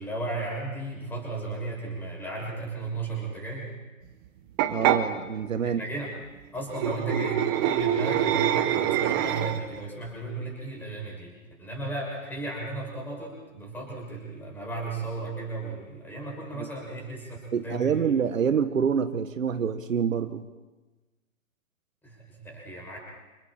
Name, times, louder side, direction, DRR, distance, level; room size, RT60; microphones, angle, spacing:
voice 1, 0.0-3.7 5.6-6.1 6.5-18.1 22.0-23.0, right 2 dB, 5° left, -2 dB, 6.6 m, -35 dB
sound 1, 4.6-5.0 6.7-9.8, right 11 dB, 15° right, 0.8 m, -25 dB
voice 2, 4.7-5.8 16.5-16.7 17.5-20.5, right 7 dB, 70° right, 9 dB, 1.6 m, -26 dB
29.5 x 28.5 x 4.4 m, 1.2 s
hypercardioid pair, 150°, 41 cm